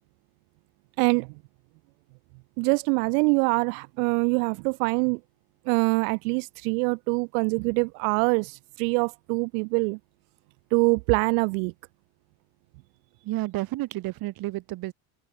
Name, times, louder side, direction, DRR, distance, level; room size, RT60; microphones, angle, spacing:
voice 1, 1.0-1.3 2.6-5.2 5.7-10.0 10.7-11.7, right 35 dB, 90° right, 0.8 m, -24 dB
voice 2, 13.2-14.9, right 18 dB, 55° right, 2.4 m, -31 dB
open air
cardioid pair, 130°, 41 cm